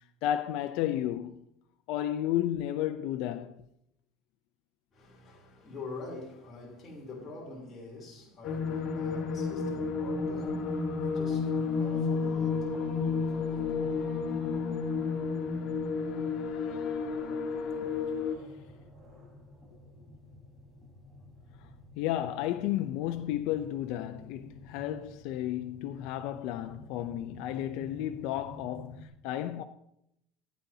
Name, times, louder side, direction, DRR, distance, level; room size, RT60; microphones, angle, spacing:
voice 1, 0.2-1.5 1.9-3.6 22.0-29.6, left 12 dB, 70° left, 0.5 m, -32 dB
voice 2, 4.9-14.6, left 3 dB, 25° left, 3.3 m, -46 dB
sound 1, 8.4-18.4, left 5 dB, 50° left, 1.6 m, -31 dB
sound 2, 9.4-29.1, equal, 15° right, 4.7 m, -52 dB
15.5 x 9.2 x 2.8 m
cardioid pair, 130°, 0 cm